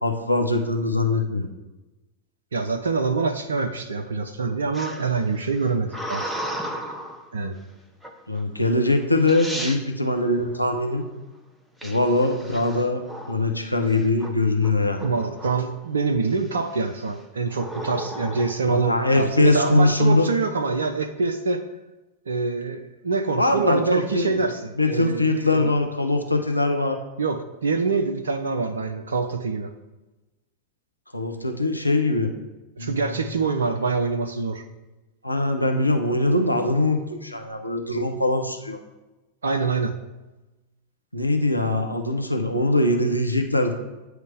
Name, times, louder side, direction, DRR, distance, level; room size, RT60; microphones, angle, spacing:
voice 1, 0.0-1.5 8.3-11.0 11.8-15.1 18.7-20.3 23.4-24.4 24.8-27.0 31.1-32.3 32.8-33.3 35.2-38.8 41.1-43.7, left 2 dB, 85° left, 4 dB, 0.7 m, -22 dB
voice 2, 2.5-6.4 7.3-7.6 15.0-21.6 22.3-25.7 27.2-29.7 32.8-34.7 39.4-40.0, right 4 dB, 70° right, 7 dB, 0.4 m, -25 dB
sound 1, 4.7-7.2 8.0-8.4 9.0-9.1 9.3-9.8 11.8-13.5 13.9-14.3 14.6-15.8 16.3-16.7 17.5-18.6, equal, 5° right, 0.8 m, -34 dB
9.1 x 3.2 x 4.9 m, 1.1 s
figure-of-eight pair, 90°, 0 cm